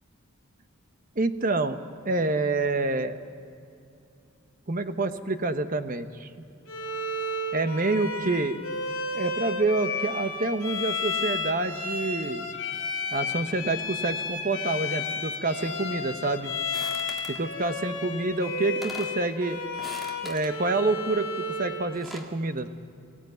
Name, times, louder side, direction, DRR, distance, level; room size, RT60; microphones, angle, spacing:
voice 1, 1.2-3.2 4.7-6.3 7.5-8.6 9.1-12.4 13.1-16.5 17.3-19.6 20.2-22.7, right 2 dB, 40° right, 9 dB, 1.0 m, -27 dB
Bowed string instrument, 6.7-21.9, left 3 dB, 65° left, 3.4 m, -32 dB
sound 1, 16.7-17.4 18.3-18.4 18.6-19.2 19.7-20.5 21.7-22.3, left 1 dB, ahead, 1.9 m, -42 dB
23.0 x 16.5 x 9.3 m, 2.5 s
head